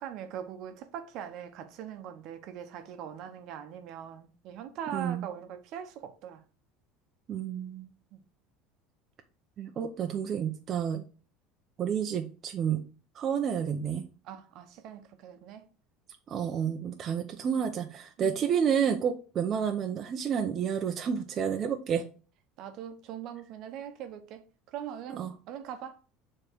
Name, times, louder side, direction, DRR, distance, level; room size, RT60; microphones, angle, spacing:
voice 1, 0.0-6.4 8.1-8.2 14.2-15.7 18.2-18.3 22.6-26.0, right 9 dB, 60° right, 1.0 m, -41 dB
voice 2, 4.9-5.2 7.3-7.9 9.6-11.0 11.8-12.8 13.1-14.1 16.3-22.0 25.1-25.3, right 7 dB, 40° right, 0.7 m, -30 dB
6.7 x 3.8 x 4.6 m
supercardioid pair, 115°, 0 cm